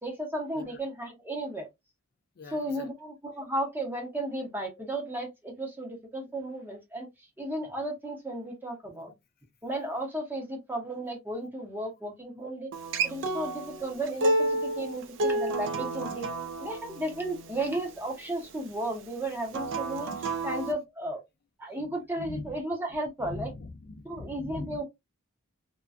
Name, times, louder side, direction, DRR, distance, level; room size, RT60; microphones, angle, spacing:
voice 1, 0.0-1.7 2.5-7.1 7.4-9.1 9.6-12.7 13.0-16.3 16.6-20.1 20.4-21.2 21.6-23.5 24.0-24.8, right 1 dB, 10° right, 0.8 m, -34 dB
voice 2, 2.4-2.9 21.7-22.6 22.9-24.8, left 2 dB, 45° left, 0.4 m, -42 dB
Acoustic guitar, 12.7-17.9 19.5-20.7, right 2 dB, 60° right, 0.4 m, -30 dB
2.5 x 2.2 x 2.4 m
head